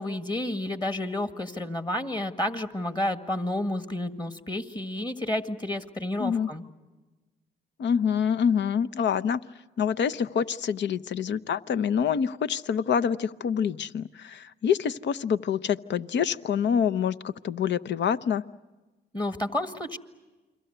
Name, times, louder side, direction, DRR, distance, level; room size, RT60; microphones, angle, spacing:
voice 1, 0.0-6.6 19.1-20.0, left 1 dB, 20° left, 8 dB, 1.9 m, -30 dB
voice 2, 6.2-6.5 7.8-9.4 9.8-18.4, left 7 dB, 60° left, 12 dB, 0.8 m, -26 dB
29.5 x 23.0 x 8.0 m, 1.2 s
supercardioid pair, 60°, 20 cm